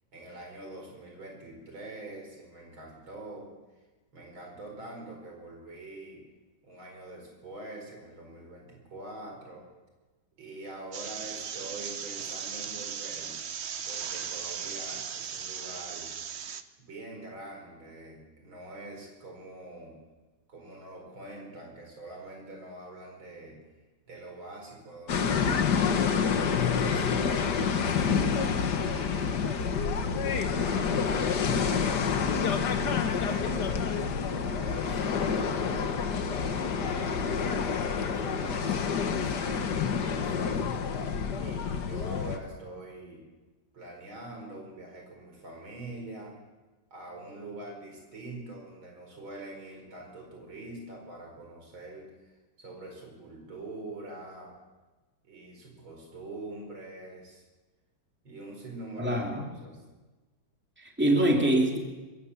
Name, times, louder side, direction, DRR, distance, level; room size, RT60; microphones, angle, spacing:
voice 1, 0.1-3.5 4.1-6.2 6.6-9.7 10.4-13.4 13.9-16.1 16.8-20.0 20.5-23.6 24.1-25.6 26.3-29.4 29.9-32.3 33.2-36.0 36.3-37.5 37.8-40.7 41.4-43.2 43.7-46.3 46.9-52.1 52.6-54.5 55.2-57.4 58.2-59.8, right 2 dB, 85° right, 1 dB, 5.4 m, -44 dB
sound 1, 10.9-16.6, right 7 dB, 55° right, 0.7 m, -37 dB
sound 2, 25.1-42.4, left 6 dB, 60° left, 1.8 m, -28 dB
voice 2, 59.0-59.4 60.8-61.8, right 1 dB, 5° right, 1 dB, 2.8 m, -24 dB
22.5 x 16.0 x 7.3 m, 1.2 s
omnidirectional pair, 2.1 m